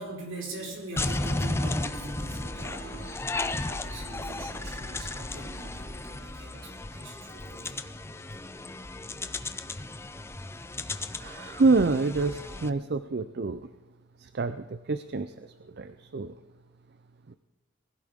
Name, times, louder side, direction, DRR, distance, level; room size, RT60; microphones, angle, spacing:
voice 1, 0.0-7.8, right 2 dB, 70° right, -2 dB, 4.4 m, -42 dB
sound 1, 1.0-12.7, left 2 dB, 10° left, 0.4 m, -34 dB
voice 2, 11.2-13.6 14.2-16.3 17.3-17.4, right 3 dB, 50° right, 11 dB, 0.5 m, -27 dB
19.5 x 16.0 x 3.6 m, 1.2 s
head